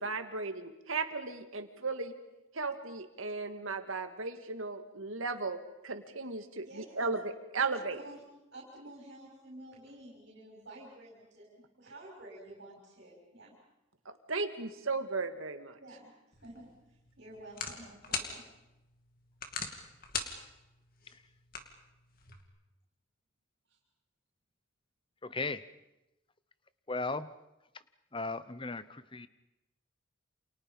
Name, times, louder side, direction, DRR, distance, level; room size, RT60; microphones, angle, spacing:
voice 1, 0.0-2.1 2.5-8.0 14.1-15.8, right 4 dB, 75° right, 7 dB, 2.1 m, -36 dB
voice 2, 6.6-7.1 7.6-7.7 8.0-8.2 8.5-13.5 15.8-16.1 16.4-16.7 17.2-18.4, right 1 dB, 55° right, -2 dB, 6.4 m, -50 dB
sound 1, 16.3-22.4, left 5 dB, 45° left, 2.6 m, -43 dB
voice 3, 25.2-25.6 26.9-27.3 28.1-29.3, left 3 dB, 25° left, 14 dB, 0.9 m, -36 dB
29.0 x 28.0 x 5.4 m, 0.94 s
head